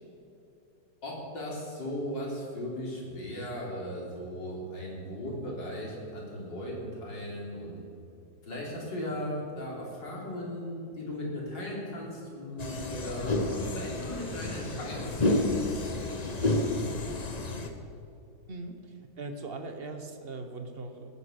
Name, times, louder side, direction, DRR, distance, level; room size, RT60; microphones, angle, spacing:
voice 1, 1.0-7.8 8.4-16.8, equal, 70° left, -3 dB, 4.4 m, -37 dB
sound 1, 12.6-17.7, left 2 dB, 30° left, 0.8 m, -30 dB
voice 2, 19.2-21.1, right 3 dB, 35° right, 6 dB, 1.3 m, -39 dB
18.0 x 9.9 x 6.6 m, 2.7 s
omnidirectional pair, 2.0 m